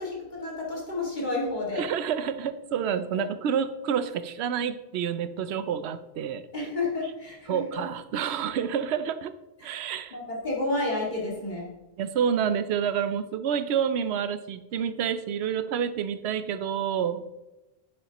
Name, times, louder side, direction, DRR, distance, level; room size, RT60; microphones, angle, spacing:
voice 1, 0.0-1.9 3.1-3.2 6.5-7.8 9.6-11.7, left 2 dB, 45° left, -4 dB, 2.4 m, -31 dB
voice 2, 1.8-6.5 7.5-9.3 9.6-10.2 12.0-17.2, right 8 dB, 90° right, 13 dB, 0.8 m, -28 dB
9.6 x 7.0 x 3.0 m, 1.0 s
omnidirectional pair, 1.1 m